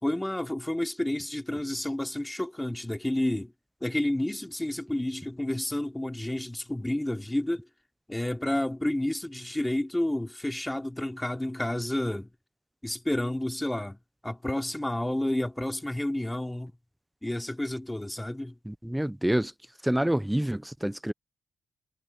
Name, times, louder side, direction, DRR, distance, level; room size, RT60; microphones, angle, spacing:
voice 1, 0.0-3.5 3.8-7.6 8.1-12.3 12.8-14.0 14.2-16.7 17.2-18.5, left 1 dB, 10° left, 3.2 m, -30 dB
voice 2, 18.7-19.5 19.8-21.1, right 1 dB, 5° right, 0.6 m, -27 dB
cardioid pair, 70°, 0 cm